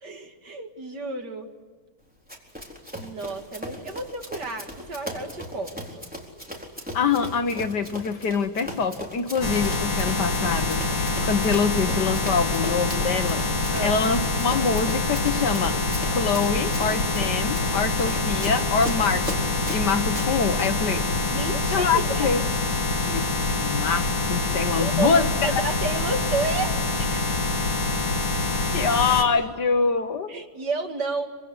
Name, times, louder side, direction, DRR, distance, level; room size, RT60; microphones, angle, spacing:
voice 1, 0.0-1.5 3.0-6.0 13.7-13.9 21.3-22.3 24.8-27.4 30.3-31.3, right 3 dB, 55° right, 4 dB, 2.7 m, -31 dB
Run, 2.3-20.3, equal, 5° right, 4.1 m, -38 dB
voice 2, 6.9-15.8 16.1-21.1 21.7-22.4 23.0-25.5 28.7-30.3, left 5 dB, 60° left, 8 dB, 1.6 m, -25 dB
sound 1, 9.4-29.2, left 3 dB, 80° left, 3.8 m, -25 dB
26.0 x 25.0 x 8.1 m, 1.5 s
omnidirectional pair, 2.3 m